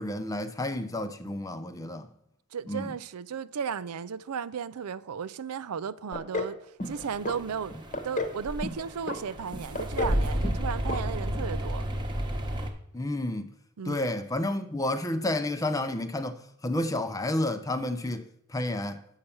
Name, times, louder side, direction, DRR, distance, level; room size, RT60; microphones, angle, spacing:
voice 1, 0.0-2.1 2.7-2.9 12.9-13.5 13.9-18.2 18.5-19.0, left 1 dB, 15° left, 0.5 m, -30 dB
voice 2, 2.5-6.6 6.8-7.7 8.0-11.9 13.8-14.1, right 6 dB, 85° right, 0.5 m, -35 dB
sound 1, 6.1-6.5 6.8-7.4 7.7-8.4 8.6-9.2 9.5-10.2 10.4-10.6 10.9-11.0 11.3-11.4, left 2 dB, 35° left, 1.0 m, -32 dB
sound 2, 6.8-12.7, equal, 20° right, 1.0 m, -32 dB
8.1 x 5.7 x 6.9 m
head